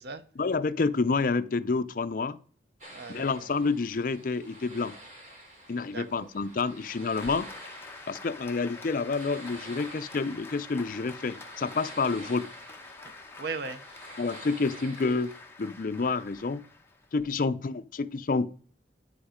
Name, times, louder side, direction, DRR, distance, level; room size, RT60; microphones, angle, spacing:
voice 1, 0.4-2.4 3.1-5.0 5.7-7.5 8.1-12.5 14.2-15.3 15.6-16.6 17.1-18.5, left 4 dB, 50° left, 0.4 m, -28 dB
sound 1, 2.8-15.4, right 1 dB, 45° right, 2.7 m, -49 dB
voice 2, 2.9-3.5 5.9-6.3 13.0-13.8, right 4 dB, 60° right, 0.7 m, -38 dB
Applause, 7.2-17.2, left 3 dB, 15° left, 0.9 m, -46 dB
9.4 x 5.1 x 5.0 m
head